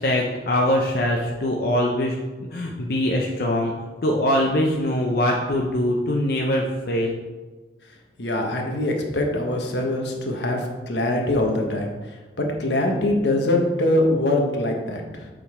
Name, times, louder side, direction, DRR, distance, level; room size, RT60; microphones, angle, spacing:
voice 1, 0.0-2.2 2.5-3.7 4.0-7.2, left 1 dB, 55° left, -1 dB, 0.6 m, -22 dB
voice 2, 8.2-11.9 12.6-15.3, left 1 dB, 80° left, 2 dB, 1.1 m, -23 dB
6.9 x 3.8 x 4.8 m, 1.3 s
head